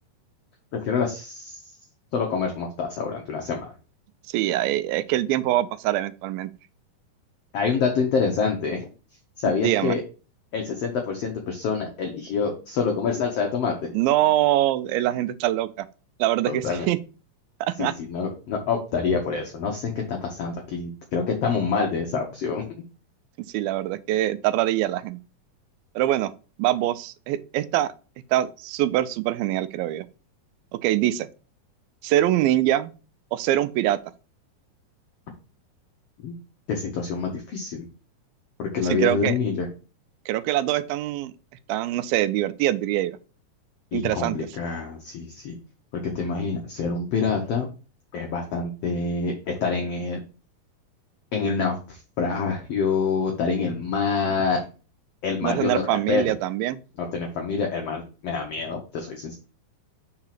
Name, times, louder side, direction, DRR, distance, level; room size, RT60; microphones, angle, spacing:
voice 1, 0.8-1.6 2.1-3.7 7.5-8.9 9.4-10.0 10.5-13.9 16.5-16.9 17.8-22.7 36.2-36.3 36.7-37.8 38.6-39.7 43.9-45.6 46.0-47.7 48.1-50.2 51.3-54.6 55.2-56.2 57.0-59.3, left 5 dB, 85° left, 1.3 m, -26 dB
voice 2, 4.3-6.5 9.4-10.0 13.9-15.9 16.2-17.0 17.6-17.9 23.5-25.2 26.0-26.3 26.6-27.9 28.3-30.1 30.7-31.3 32.0-32.9 33.3-34.0 38.9-39.4 40.3-41.3 41.7-43.2 43.9-44.4 55.4-56.8, right 14 dB, 85° right, 2.3 m, -24 dB
4.9 x 4.6 x 5.7 m
omnidirectional pair, 4.1 m